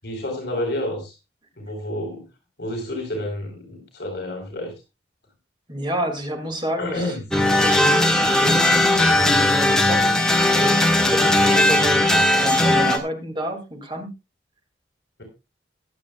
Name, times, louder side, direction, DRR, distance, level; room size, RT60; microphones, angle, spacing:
voice 1, 0.0-1.1 1.6-2.2 2.6-4.7 6.8-7.2, left 1 dB, 60° left, 1 dB, 4.5 m, -29 dB
voice 2, 5.7-10.2 10.5-14.1, equal, 25° right, 4 dB, 2.5 m, -29 dB
sound 1, 7.3-13.0, left 1 dB, 5° left, 1.5 m, -18 dB
22.0 x 8.6 x 2.4 m, 0.26 s
head